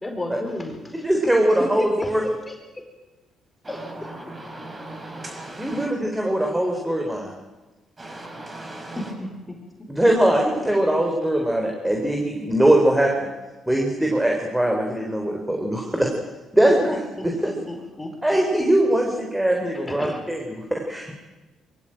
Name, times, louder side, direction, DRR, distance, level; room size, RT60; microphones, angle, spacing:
voice 1, 0.0-1.1 1.6-2.8 3.7-4.1 9.0-9.9 17.2-18.2 19.9-20.2, left 1 dB, 15° left, 3 dB, 4.5 m, -33 dB
voice 2, 1.0-2.2 5.6-7.3 9.9-13.3 13.7-16.1 16.5-17.0 17.2-17.5 18.2-21.2, right 1 dB, 10° right, 1 dB, 4.2 m, -21 dB
voice 3, 3.6-5.9 8.0-9.1, right 2 dB, 30° right, 3 dB, 7.0 m, -38 dB
22.5 x 16.0 x 9.1 m, 1.1 s
supercardioid pair, 70°, 0 cm